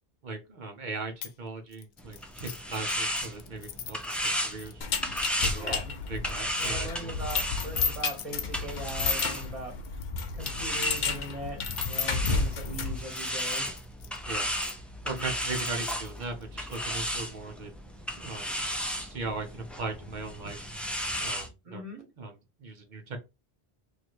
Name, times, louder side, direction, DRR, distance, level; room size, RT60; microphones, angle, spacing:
voice 1, 0.2-4.8 5.4-5.8 6.1-7.1 14.3-14.5 15.0-18.5 18.8-20.7 21.2-21.8 22.2-23.2, right 3 dB, 50° right, 5 dB, 1.0 m, -39 dB
sound 1, 1.2-1.4 1.7-7.0 7.8-11.9 12.4-14.7 15.2-16.8, left 10 dB, 85° left, 0.8 m, -48 dB
sound 2, 2.0-9.8 10.4-21.5, equal, ahead, 0.4 m, -35 dB
sound 3, 4.8-13.1, left 4 dB, 55° left, 0.7 m, -31 dB
voice 2, 5.6-5.9 6.6-9.7 10.3-11.6 11.9-13.7 21.6-22.1, right 1 dB, 35° right, 1 dB, 1.4 m, -40 dB
3.1 x 2.8 x 4.3 m, 0.27 s
omnidirectional pair, 1.0 m